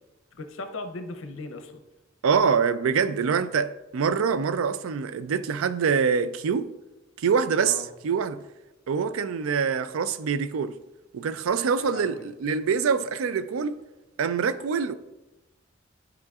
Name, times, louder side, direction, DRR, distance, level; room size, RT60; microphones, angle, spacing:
voice 1, 0.3-1.8 7.6-7.9 11.8-12.2, left 2 dB, 75° left, 0.7 m, -37 dB
voice 2, 2.2-6.7 7.2-8.4 8.9-10.8 11.1-13.8 14.2-14.9, right 6 dB, 90° right, 0.4 m, -25 dB
11.5 x 4.9 x 2.4 m
head